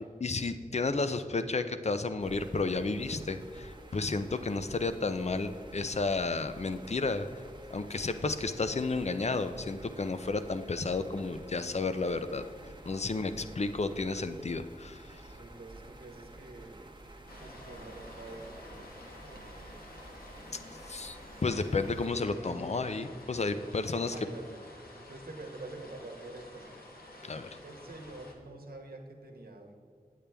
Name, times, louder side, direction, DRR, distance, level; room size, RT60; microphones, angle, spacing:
voice 1, 0.2-7.3 7.7-12.4 12.9-15.1 20.9-24.2 27.2-27.5, left 3 dB, 45° left, 10 dB, 0.5 m, -32 dB
sound 1, 2.2-22.1, right 2 dB, 30° right, 0.9 m, -51 dB
voice 2, 13.1-13.4 15.4-16.9 17.3-19.6 24.0-24.6 25.0-26.8 27.6-29.8, right 2 dB, 90° right, 3 dB, 1.0 m, -47 dB
sound 2, 17.3-28.3, left 1 dB, 80° left, 1.3 m, -50 dB
8.7 x 8.4 x 3.4 m, 2.2 s
wide cardioid pair, 70°, 15 cm